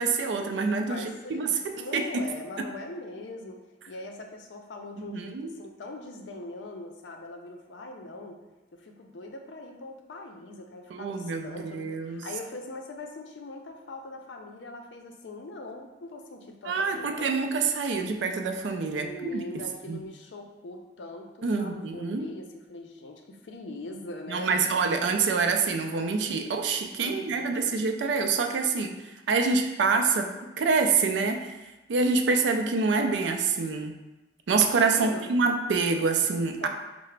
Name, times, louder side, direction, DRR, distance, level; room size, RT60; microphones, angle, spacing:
voice 1, 0.0-1.5 1.9-2.0 5.0-5.5 10.9-12.3 16.6-19.4 19.9-20.0 21.4-22.3 24.3-28.9 29.3-30.3 30.6-31.5 31.9-34.0 34.5-36.7, right 4 dB, 70° right, 5 dB, 0.4 m, -26 dB
voice 2, 0.9-3.6 3.9-8.4 8.7-17.3 19.0-24.6 27.0-27.7 34.9-35.3 36.6-36.7, left 2 dB, 75° left, 3 dB, 0.5 m, -41 dB
4.7 x 2.0 x 3.2 m, 1.1 s
head